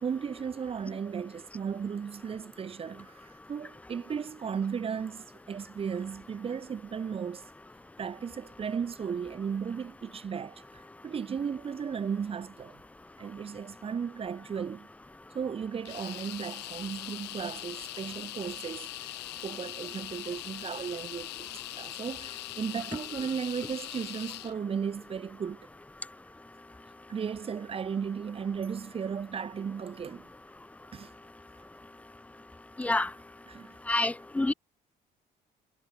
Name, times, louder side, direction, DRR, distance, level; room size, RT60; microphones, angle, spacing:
voice 1, 0.0-3.2 3.5-7.4 8.0-10.6 11.0-12.8 13.2-14.9 15.3-19.1 19.4-25.7 27.1-30.3 30.9-31.1 33.5-33.8, right 7 dB, 35° right, 1.3 m, -35 dB
sound 1, 15.8-24.5, left 18 dB, 85° left, 2.5 m, -41 dB
voice 2, 32.8-33.1 33.9-34.5, left 2 dB, 10° left, 0.4 m, -27 dB
cardioid pair, 110°, 17 cm